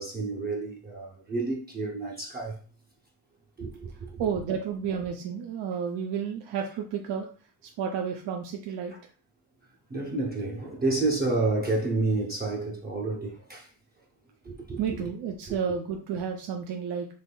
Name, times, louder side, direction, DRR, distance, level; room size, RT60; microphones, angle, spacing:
voice 1, 0.0-2.6 3.6-4.2 9.9-13.7 14.4-14.8 15.5-15.6, right 3 dB, 25° right, 0.6 m, -30 dB
voice 2, 4.2-7.3 7.6-8.9 14.8-17.1, right 7 dB, 75° right, 0.6 m, -31 dB
3.4 x 3.1 x 2.2 m
cardioid pair, 100°, 42 cm